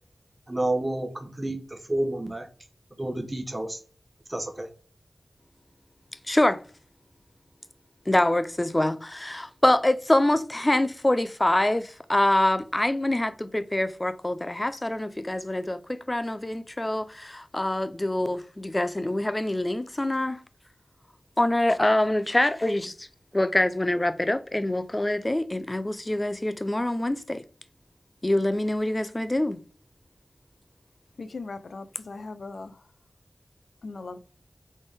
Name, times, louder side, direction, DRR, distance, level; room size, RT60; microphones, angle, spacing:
voice 1, 0.5-2.5 3.0-3.8 4.3-4.7, right 1 dB, 25° right, 0.9 m, -29 dB
voice 2, 6.3-6.6 8.1-20.4 21.4-23.1 23.3-27.4 28.2-29.6, left 1 dB, 25° left, 0.5 m, -25 dB
voice 3, 31.2-32.8 33.8-34.2, left 3 dB, 80° left, 0.4 m, -38 dB
4.2 x 3.4 x 3.4 m
wide cardioid pair, 65°, 0 cm